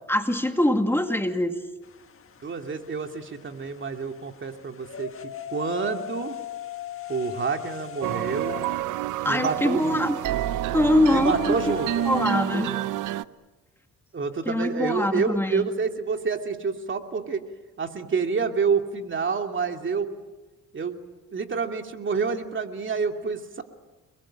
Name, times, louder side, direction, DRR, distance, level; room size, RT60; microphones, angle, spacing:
voice 1, 0.1-1.5 9.2-10.2 10.7-11.7 12.1-12.7 14.5-15.7, left 1 dB, 10° left, 5 dB, 2.3 m, -23 dB
sound 1, 1.8-12.3, left 10 dB, 45° left, 1.7 m, -39 dB
voice 2, 2.4-6.4 7.1-8.6 9.3-10.1 11.1-11.9 12.2-12.8 14.1-17.4 17.8-20.1 20.7-21.0 21.3-23.6, right 5 dB, 40° right, 5 dB, 2.7 m, -28 dB
sound 2, 8.0-13.2, right 14 dB, 85° right, 0.8 m, -28 dB
29.0 x 22.0 x 8.9 m, 1.2 s
cardioid pair, 90°, 30 cm